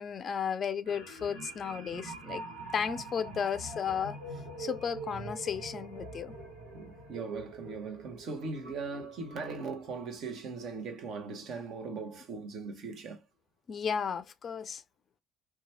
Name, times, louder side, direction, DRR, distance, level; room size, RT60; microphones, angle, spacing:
voice 1, 0.0-2.4 2.7-4.2 4.6-6.3 13.7-14.8, left 7 dB, 40° left, 0.4 m, -34 dB
sound 1, 0.8-11.6 12.0-12.2, right 2 dB, 85° right, 1.2 m, -45 dB
voice 2, 6.7-13.2, right 4 dB, 55° right, 0.9 m, -39 dB
2.9 x 2.3 x 2.7 m
hypercardioid pair, 60°, 0 cm